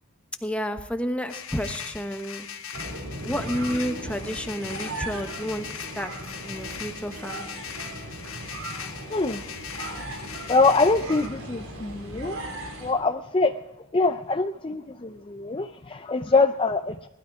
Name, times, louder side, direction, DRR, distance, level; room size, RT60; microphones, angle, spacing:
voice 1, 0.4-2.5 3.2-6.1 6.4-7.6, equal, 5° left, 6 dB, 1.1 m, -31 dB
sound 1, 1.3-11.3, left 8 dB, 75° left, 1.5 m, -40 dB
sound 2, 2.7-12.9, right 1 dB, 85° right, 4.7 m, -37 dB
voice 2, 8.7-9.4 10.5-12.4 12.8-13.6 13.9-17.1, left 3 dB, 25° left, 7 dB, 0.5 m, -24 dB
20.0 x 12.5 x 4.8 m, 0.90 s
head